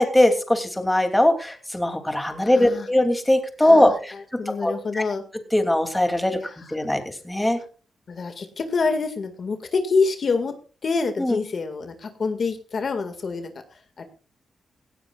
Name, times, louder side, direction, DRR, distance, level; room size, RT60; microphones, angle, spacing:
voice 1, 0.0-4.1 4.6-5.0 5.5-6.4 6.7-7.6 11.2-11.4, left 1 dB, 10° left, 6 dB, 2.8 m, -20 dB
voice 2, 2.4-2.9 3.6-5.2 6.3-6.5 8.1-10.6 10.8-13.5 14.0-14.1, left 4 dB, 50° left, 7 dB, 2.0 m, -26 dB
18.0 x 16.0 x 2.4 m, 0.35 s
cardioid pair, 105°, 0 cm